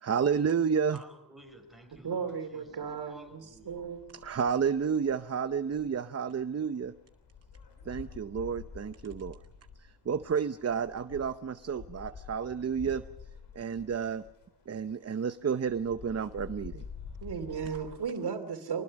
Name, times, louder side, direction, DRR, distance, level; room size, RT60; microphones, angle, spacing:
voice 1, 0.0-1.0 4.2-6.9 7.9-9.4 10.1-13.0 13.5-14.2 14.7-16.8, right 6 dB, 40° right, 11 dB, 0.7 m, -30 dB
voice 2, 0.9-3.8, right 1 dB, ahead, 2 dB, 5.5 m, -54 dB
sound 1, 1.4-18.0, left 6 dB, 85° left, 3.9 m, -49 dB
voice 3, 2.0-4.0 17.2-18.8, right 6 dB, 75° right, 7 dB, 2.8 m, -35 dB
24.5 x 20.0 x 6.5 m, 0.83 s
wide cardioid pair, 110°, 39 cm